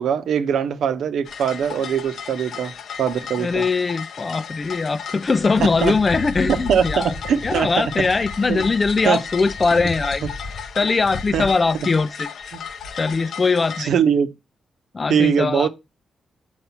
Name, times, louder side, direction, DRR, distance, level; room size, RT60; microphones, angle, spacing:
voice 1, 0.0-2.7 3.0-3.6 5.6-5.9 6.7-7.8 8.5-8.7 9.0-9.2 11.3-11.4 13.8-14.3 15.1-15.7, right 8 dB, 70° right, 0.9 m, -21 dB
sound 1, 1.2-13.8, left 5 dB, 70° left, 0.8 m, -33 dB
voice 2, 3.4-7.1 7.4-10.2 10.8-12.3 13.0-13.9 14.9-15.7, left 4 dB, 40° left, 0.5 m, -21 dB
8.0 x 4.2 x 5.8 m
hypercardioid pair, 40°, 0 cm